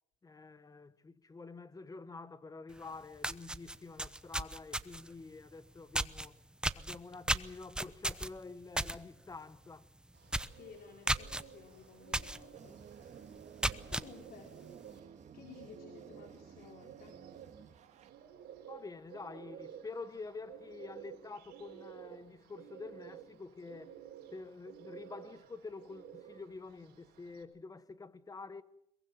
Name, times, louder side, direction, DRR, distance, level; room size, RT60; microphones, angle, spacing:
voice 1, 0.2-6.4 6.8-9.9 18.7-24.0 24.3-28.6, left 4 dB, 20° left, 1.2 m, -48 dB
sound 1, 2.8-2.9 3.2-5.1 5.9-6.3 6.6-9.0 9.3-9.6 9.9-10.0 10.3-10.6 11.1-11.4 12.1-12.4 12.8-12.9 13.4-14.1, right 1 dB, 5° right, 0.9 m, -34 dB
Bird, 10.1-27.4, right 9 dB, 80° right, 4.0 m, -53 dB
voice 2, 10.5-12.7 13.0-13.2 13.9-14.5 15.3-17.2, left 6 dB, 65° left, 4.1 m, -54 dB
sound 2, 12.5-18.1, right 7 dB, 45° right, 2.0 m, -55 dB
22.5 x 22.0 x 7.6 m
cardioid pair, 110°, 17 cm